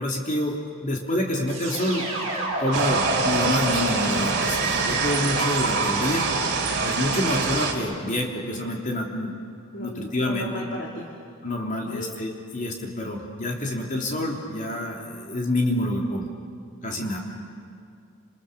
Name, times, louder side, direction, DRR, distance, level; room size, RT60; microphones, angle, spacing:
voice 1, 0.0-2.3 2.6-6.3 6.8-9.4 9.8-10.5 11.4-16.3 16.8-17.2, left 1 dB, 35° left, 0 dB, 3.3 m, -27 dB
sound 1, 1.5-6.4, right 1 dB, 30° right, 7.3 m, -30 dB
sound 2, 2.7-7.7, right 4 dB, 50° right, 3.2 m, -25 dB
voice 2, 9.7-11.1 11.5-12.1 16.9-17.2, equal, 55° left, -4 dB, 3.0 m, -36 dB
29.5 x 28.0 x 7.0 m, 2.3 s
head